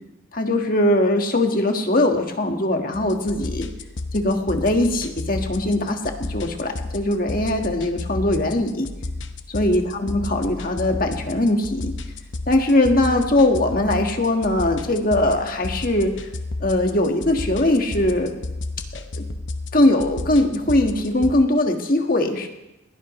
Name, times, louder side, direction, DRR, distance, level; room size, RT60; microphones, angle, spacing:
voice 1, 0.3-3.7 4.1-8.9 9.5-11.9 12.5-16.1 16.6-18.3 18.9-19.3 19.7-22.5, left 1 dB, 45° left, 3 dB, 1.6 m, -21 dB
sound 1, 2.9-21.3, left 2 dB, 60° left, 0.9 m, -33 dB
21.0 x 16.5 x 3.2 m, 0.96 s
head